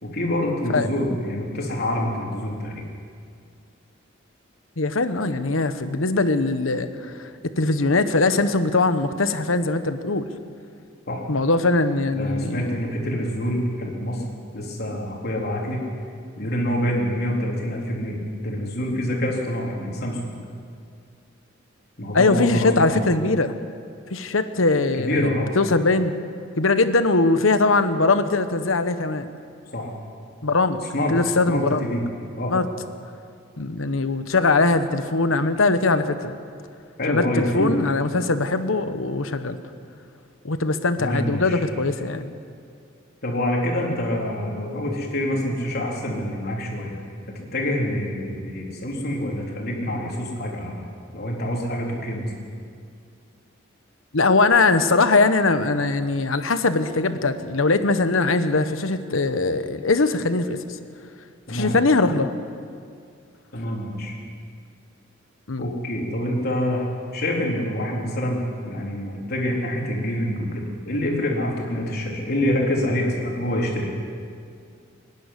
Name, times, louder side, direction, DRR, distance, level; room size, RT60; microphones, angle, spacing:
voice 1, 0.0-2.8 11.1-11.2 12.1-14.2 14.5-15.9 16.4-20.4 22.0-23.1 25.0-25.5 29.7-29.9 30.9-31.2 31.5-32.0 32.4-32.5 37.0-37.8 41.0-41.6 43.2-47.0 47.3-50.8 51.1-52.3 61.5-61.8 63.5-64.1 65.6-66.9 67.1-73.9, left 1 dB, 55° left, -2 dB, 3.8 m, -26 dB
voice 2, 4.8-10.3 11.3-12.7 22.1-23.5 24.1-26.1 26.6-29.3 30.4-30.8 31.1-31.9 32.5-32.7 33.6-36.3 37.1-39.6 40.4-42.3 43.9-44.0 54.1-60.6 61.5-62.3 65.5-65.6, left 3 dB, 85° left, 10 dB, 1.1 m, -21 dB
24.0 x 11.0 x 10.0 m, 2.3 s
head